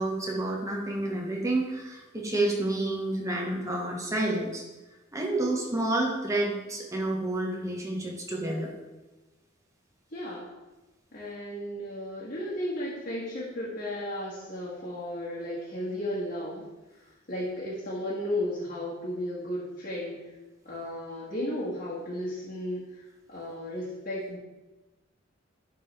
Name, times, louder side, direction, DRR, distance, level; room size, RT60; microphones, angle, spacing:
voice 1, 0.0-4.6 5.1-8.7, right 2 dB, 15° right, -1 dB, 1.2 m, -29 dB
voice 2, 10.1-10.5 11.1-16.6 16.9-20.3 20.6-23.0 23.3-24.4, left 1 dB, 45° left, -8 dB, 1.5 m, -34 dB
10.5 x 3.7 x 3.3 m, 1.1 s
head